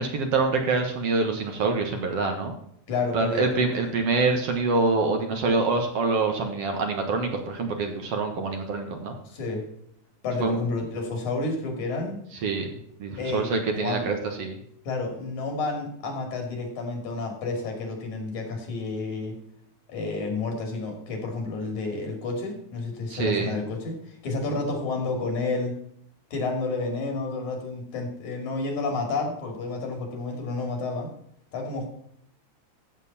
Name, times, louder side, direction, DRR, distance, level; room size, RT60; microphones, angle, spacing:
voice 1, 0.0-2.5 3.1-9.1 10.4-10.6 12.4-14.6 23.1-23.5, right 3 dB, 55° right, 4 dB, 2.3 m, -25 dB
voice 2, 2.9-3.9 9.2-9.7 10.2-12.2 13.2-13.5 13.7-14.0 14.9-19.4 19.9-25.8 26.3-31.1 31.5-31.9, left 3 dB, 70° left, 3 dB, 4.1 m, -30 dB
14.5 x 7.3 x 4.2 m, 0.69 s
omnidirectional pair, 3.5 m